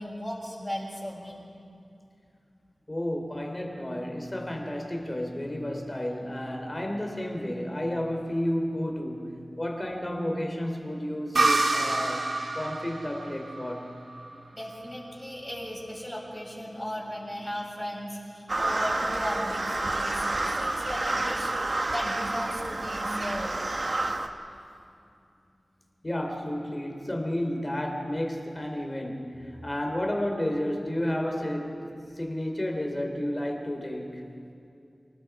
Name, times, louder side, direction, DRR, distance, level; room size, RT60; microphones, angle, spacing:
voice 1, 0.0-1.4 14.5-23.7, equal, 10° left, -4 dB, 7.0 m, -36 dB
voice 2, 2.9-13.9 26.0-31.9 32.2-34.3, left 1 dB, 25° left, 3 dB, 3.4 m, -31 dB
sound 1, 11.3-14.9, right 2 dB, 75° right, 1.8 m, -28 dB
sound 2, 18.5-24.3, right 2 dB, 50° right, 1.2 m, -29 dB
29.0 x 20.0 x 4.9 m, 2.5 s
wide cardioid pair, 80°, 0 cm